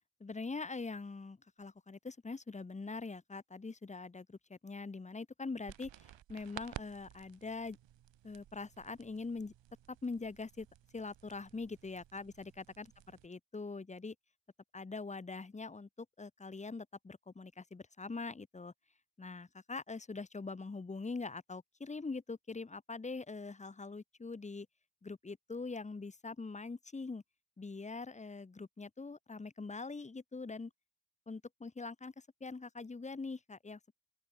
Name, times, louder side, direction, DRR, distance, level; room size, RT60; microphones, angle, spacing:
voice 1, 0.2-7.8 8.2-9.5 10.0-10.7 10.9-12.9 13.2-14.1 14.7-18.7 19.2-24.7 25.0-27.2 27.6-30.7 31.3-32.1 32.4-33.8, left 3 dB, 15° left, 0.8 m, -43 dB
sound 1, 5.7-13.3, right 12 dB, 70° right, 1.2 m, -54 dB
open air
wide cardioid pair, 155°, 45 cm